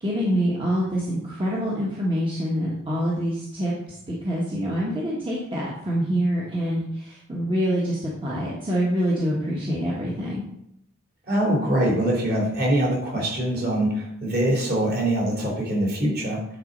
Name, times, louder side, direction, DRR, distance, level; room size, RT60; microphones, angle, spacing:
voice 1, 0.0-3.7 4.1-10.4, equal, 25° right, -6 dB, 1.4 m, -26 dB
voice 2, 11.3-16.4, right 1 dB, 45° right, -3 dB, 3.4 m, -23 dB
9.6 x 4.1 x 5.3 m, 0.77 s
head